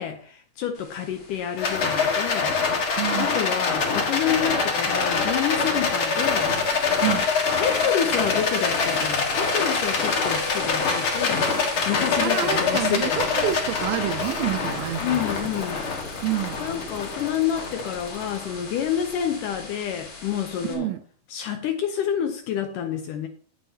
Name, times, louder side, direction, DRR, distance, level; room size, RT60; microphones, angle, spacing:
voice 1, 0.0-2.6 3.0-6.6 7.1-7.3 7.6-11.5 11.9-13.2 15.0-15.9 16.6-20.9 21.3-23.3, left 9 dB, 75° left, 2.0 m, -28 dB
sound 1, 0.7-20.7, left 3 dB, 35° left, 3.1 m, -39 dB
Rattle, 1.6-18.9, left 4 dB, 50° left, 1.7 m, -25 dB
voice 2, 2.9-3.3 7.0-7.2 12.2-15.2 16.2-16.6 20.7-21.0, right 13 dB, 80° right, 2.3 m, -27 dB
17.0 x 7.5 x 2.8 m
omnidirectional pair, 4.5 m